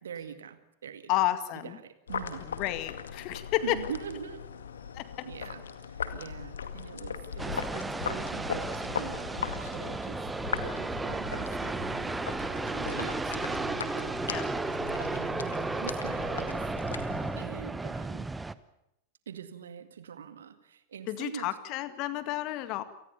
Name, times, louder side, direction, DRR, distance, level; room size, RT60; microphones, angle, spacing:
voice 1, 0.0-1.2 1.5-2.5 3.6-4.5 5.2-10.2 10.6-12.2 12.5-14.1 14.6-16.7 16.9-17.1 17.4-18.3 19.3-21.5, right 8 dB, 65° right, 11 dB, 2.0 m, -43 dB
voice 2, 1.1-1.8 2.4-3.8 4.9-5.1 14.3-14.5 21.1-22.8, left 15 dB, 40° left, 12 dB, 2.0 m, -31 dB
sound 1, 2.1-17.4, left 7 dB, 65° left, 2.0 m, -39 dB
sound 2, 7.4-18.5, right 3 dB, 10° right, 1.0 m, -34 dB
29.0 x 19.5 x 7.1 m, 0.85 s
figure-of-eight pair, 90°, 0 cm